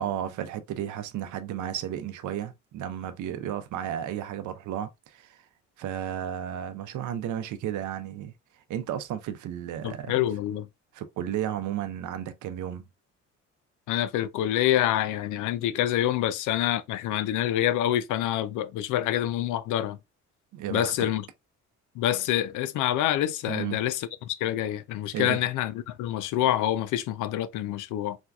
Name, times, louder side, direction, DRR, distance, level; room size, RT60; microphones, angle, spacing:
voice 1, 0.0-5.4 5.8-8.3 8.7-10.2 10.9-12.8 20.5-21.1 23.5-23.8 25.1-25.4, right 10 dB, 75° right, 0.6 m, -33 dB
voice 2, 9.8-10.7 13.9-20.0 20.7-21.2 22.0-28.2, left 12 dB, 90° left, 0.5 m, -27 dB
4.3 x 2.4 x 2.2 m
cardioid pair, 90°, 30 cm